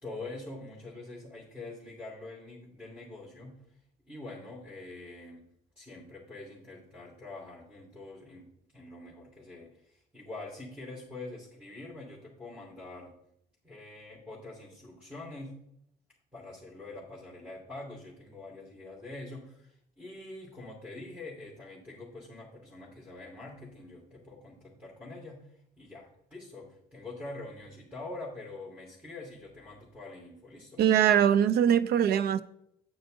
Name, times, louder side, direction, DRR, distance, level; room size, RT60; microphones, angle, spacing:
voice 1, 0.0-3.6 4.1-5.5 5.8-13.2 13.6-15.6 16.3-30.8, left 2 dB, 5° right, 2.9 m, -45 dB
voice 2, 30.8-32.4, right 9 dB, 70° right, 0.6 m, -22 dB
8.8 x 8.1 x 3.9 m
cardioid pair, 110°, 17 cm